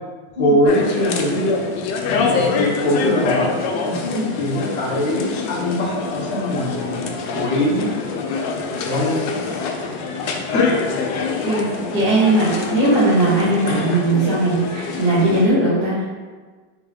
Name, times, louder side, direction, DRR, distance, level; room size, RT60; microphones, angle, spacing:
voice 1, 0.4-1.6 2.0-3.5 4.4-8.0 8.8-9.3 10.5-10.8, left 1 dB, 50° left, -3 dB, 1.0 m, -21 dB
sound 1, 0.7-15.5, left 4 dB, 80° left, 1.2 m, -25 dB
voice 2, 4.0-4.3 11.4-16.1, right 2 dB, 65° right, -12 dB, 1.9 m, -19 dB
4.4 x 3.5 x 3.3 m, 1.4 s
omnidirectional pair, 2.0 m